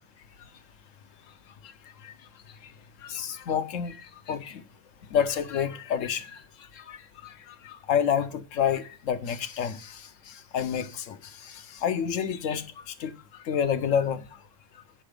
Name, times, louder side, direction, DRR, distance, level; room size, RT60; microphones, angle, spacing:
voice 1, 3.0-4.6 5.1-6.4 6.7-13.1 13.4-14.2, left 8 dB, 75° left, 1.1 m, -29 dB
8.9 x 5.8 x 5.0 m
omnidirectional pair, 1.4 m